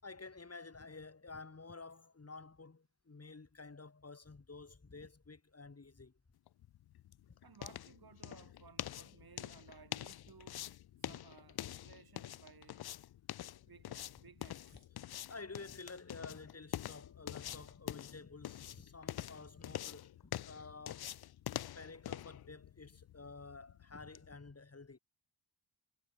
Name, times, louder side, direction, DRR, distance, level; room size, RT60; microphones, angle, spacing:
voice 1, 0.0-6.1 7.3-7.4 11.0-11.1 15.3-21.1 21.7-25.0, left 3 dB, 30° left, 5.9 m, -51 dB
sound 1, 6.5-24.3, left 12 dB, 55° left, 0.5 m, -46 dB
voice 2, 7.4-10.6 11.0-12.9 13.6-14.9, right 6 dB, 50° right, 2.4 m, -59 dB
cardioid pair, 95°, 46 cm